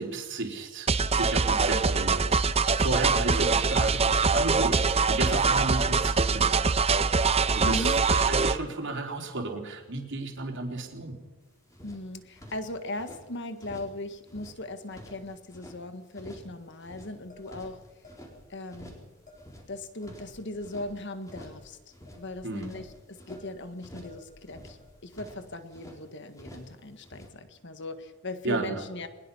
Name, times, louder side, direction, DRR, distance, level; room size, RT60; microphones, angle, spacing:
voice 1, 0.0-2.4 2.8-6.6 7.5-11.2 22.4-22.7 28.4-28.8, right 2 dB, 55° right, 2 dB, 3.8 m, -33 dB
sound 1, 0.9-8.6, right 4 dB, 25° right, 0.7 m, -23 dB
voice 2, 7.6-8.1 11.8-17.8 18.5-19.0 19.7-21.8 22.2-29.1, left 1 dB, 50° left, 9 dB, 1.7 m, -38 dB
sound 2, 11.4-11.5 11.7-13.2 13.6-14.0 14.2-15.8 16.1-16.5 16.8-18.3 18.7-19.1 19.3-20.9 21.2-21.6 21.9-23.4 23.8-24.2 24.5-26.0 26.3-26.8 27.0-27.3, equal, 15° left, 4.2 m, -49 dB
sound 3, 17.3-18.4 18.8-18.9 19.3-19.6 20.0-21.0 21.3-22.9 23.3-23.7 24.0-24.9, left 1 dB, 35° left, 7.7 m, -53 dB
22.0 x 21.0 x 5.7 m, 1.2 s
head